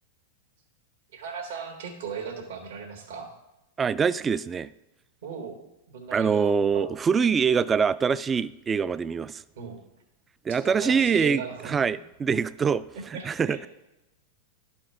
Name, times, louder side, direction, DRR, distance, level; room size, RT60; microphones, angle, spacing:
voice 1, 1.1-3.3 5.2-6.9 9.6-9.8 10.5-11.8 13.1-13.6, right 6 dB, 75° right, 1 dB, 1.5 m, -37 dB
voice 2, 3.8-4.7 6.1-9.4 10.5-13.7, right 6 dB, 20° right, 17 dB, 0.3 m, -24 dB
11.5 x 4.4 x 4.5 m, 0.95 s
hypercardioid pair, 115°, 0 cm